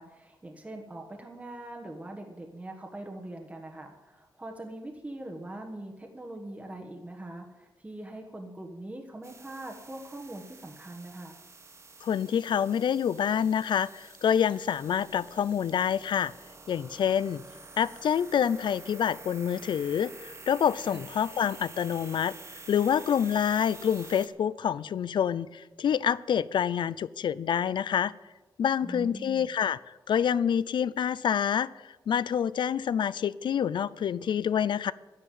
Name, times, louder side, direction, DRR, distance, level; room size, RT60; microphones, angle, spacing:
voice 1, 0.0-11.4 20.9-21.1 28.8-29.5, right 1 dB, 15° right, 1 dB, 1.5 m, -42 dB
sound 1, 9.2-24.3, right 3 dB, 35° right, 1.4 m, -49 dB
voice 2, 12.0-16.3 16.7-17.4 17.8-22.3 22.7-28.1 28.6-29.8 30.1-34.9, left 8 dB, 85° left, 19 dB, 0.5 m, -27 dB
11.5 x 10.5 x 9.2 m, 1.2 s
wide cardioid pair, 145°, 8 cm